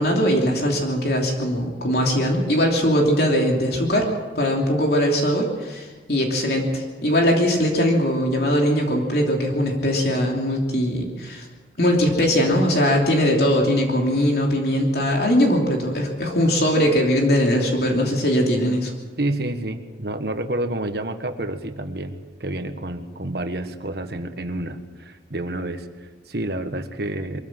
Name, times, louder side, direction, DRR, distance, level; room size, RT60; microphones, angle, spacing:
voice 1, 0.0-4.1 4.3-11.5 11.8-18.9, equal, 60° left, 0 dB, 3.0 m, -20 dB
voice 2, 19.2-27.4, right 1 dB, 60° right, 7 dB, 1.5 m, -29 dB
23.0 x 15.0 x 7.8 m, 1.3 s
head